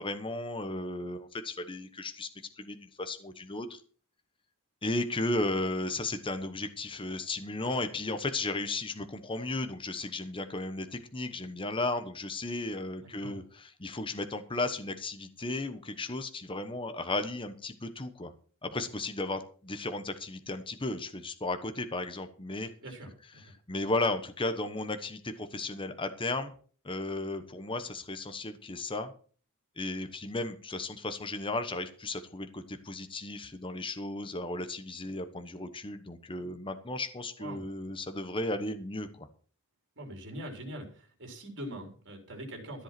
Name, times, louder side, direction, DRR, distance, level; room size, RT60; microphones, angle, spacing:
voice 1, 0.0-2.3 2.6-3.8 4.8-18.3 18.6-22.7 23.7-26.5 26.8-29.1 29.8-39.3, left 2 dB, 25° left, 9 dB, 1.1 m, -35 dB
voice 2, 13.0-13.4 22.8-23.4 37.4-37.7 40.0-42.8, right 1 dB, 55° right, 3 dB, 4.0 m, -43 dB
13.5 x 7.8 x 6.0 m, 0.42 s
head